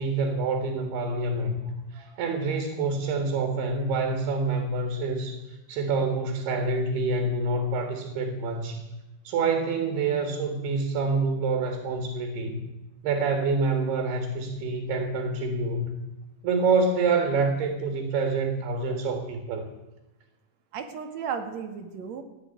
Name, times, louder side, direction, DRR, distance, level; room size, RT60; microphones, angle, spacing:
voice 1, 0.0-1.6 1.9-8.9 9.3-12.6 13.0-16.0 16.4-19.7, right 3 dB, 85° right, 5 dB, 3.8 m, -27 dB
voice 2, 20.7-22.2, right 7 dB, 55° right, 6 dB, 2.3 m, -35 dB
15.0 x 9.9 x 9.3 m, 1.0 s
omnidirectional pair, 4.4 m